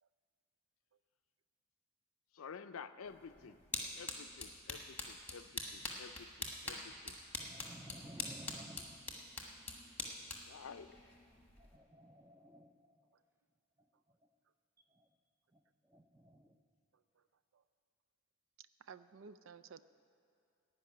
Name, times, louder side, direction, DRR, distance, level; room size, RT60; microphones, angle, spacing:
voice 1, 2.3-3.6 4.0-7.2 10.5-11.0, left 6 dB, 80° left, 12 dB, 0.5 m, -51 dB
sound 1, 3.1-11.8, left 3 dB, 10° left, 1.2 m, -45 dB
voice 2, 7.4-9.0 11.6-12.9 14.9-15.1 15.5-15.6 15.9-16.5, right 1 dB, 10° right, 6 dB, 0.5 m, -55 dB
voice 3, 18.8-19.8, right 6 dB, 65° right, 13 dB, 0.4 m, -55 dB
16.0 x 5.3 x 9.7 m, 2.6 s
head